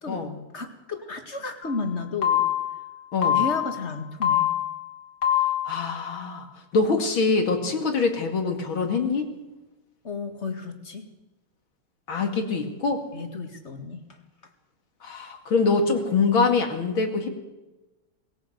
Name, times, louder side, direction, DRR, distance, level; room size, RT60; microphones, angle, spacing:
voice 1, 0.5-2.5 3.3-4.5 10.0-11.1 13.1-14.0, left 3 dB, 35° left, 6 dB, 2.2 m, -33 dB
sound 1, 1.6-1.8 2.2-2.8 3.2-3.8 4.2-4.8 5.2-5.8, left 11 dB, 55° left, 3.9 m, -23 dB
voice 2, 5.6-6.5 6.7-9.3 12.1-13.0 15.0-17.3, left 4 dB, 70° left, 5 dB, 3.3 m, -24 dB
20.0 x 17.0 x 8.0 m, 1.1 s
omnidirectional pair, 2.3 m